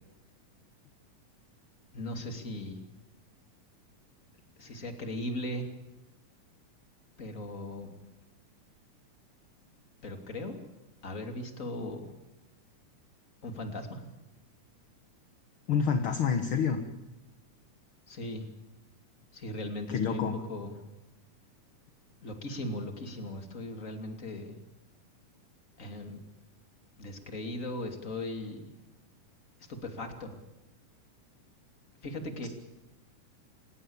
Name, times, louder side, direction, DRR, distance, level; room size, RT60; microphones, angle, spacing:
voice 1, 1.9-2.8 4.6-5.7 7.2-7.9 10.0-10.6 11.0-12.1 13.4-14.0 18.1-18.4 19.3-20.8 22.2-24.6 25.8-26.2 27.0-28.7 29.7-30.3 32.0-32.5, left 1 dB, 25° left, 5 dB, 2.9 m, -38 dB
voice 2, 15.7-16.8 19.9-20.4 32.4-32.5, left 6 dB, 50° left, 7 dB, 1.9 m, -27 dB
29.0 x 18.0 x 7.2 m, 1.0 s
omnidirectional pair, 3.7 m